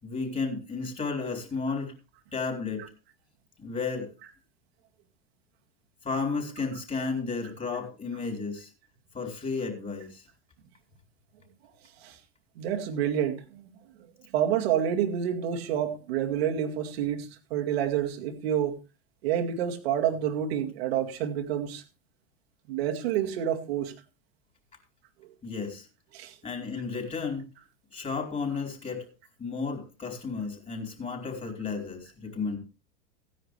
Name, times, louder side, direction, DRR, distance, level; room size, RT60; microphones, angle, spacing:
voice 1, 0.0-1.9 2.3-2.9 3.6-4.1 6.0-8.7 9.1-10.2 25.4-25.9 26.4-27.5 27.9-29.1 29.4-32.6, left 4 dB, 25° left, 4.6 m, -33 dB
voice 2, 12.6-13.7 14.3-18.8 19.2-21.8 22.7-23.9 25.2-25.3 26.1-26.4, right 9 dB, 70° right, 2.2 m, -28 dB
16.5 x 10.0 x 3.3 m
hypercardioid pair, 95°, 32 cm